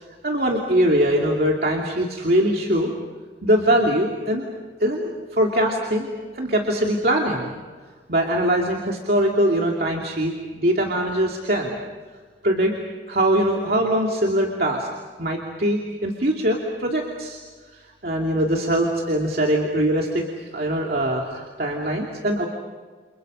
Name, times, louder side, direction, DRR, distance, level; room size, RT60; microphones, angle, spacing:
voice 1, 0.0-2.9 3.4-4.5 4.8-5.0 5.3-6.1 6.3-7.5 8.1-11.7 12.4-12.8 13.1-14.9 15.2-17.4 17.7-22.5, right 1 dB, 60° right, 0 dB, 2.7 m, -22 dB
30.0 x 29.0 x 5.5 m, 1.5 s
head